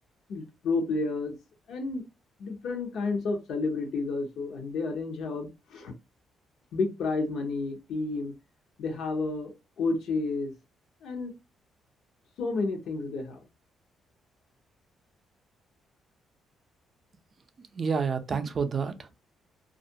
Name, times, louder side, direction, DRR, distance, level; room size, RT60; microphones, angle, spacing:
voice 1, 0.3-1.4 1.7-2.0 2.4-5.9 6.7-8.3 8.8-10.5 11.0-11.4 12.4-13.4, left 3 dB, 75° left, 0.8 m, -31 dB
voice 2, 17.7-19.1, right 5 dB, 45° right, 0.4 m, -29 dB
2.4 x 2.1 x 2.6 m
cardioid pair, 90°, 0 cm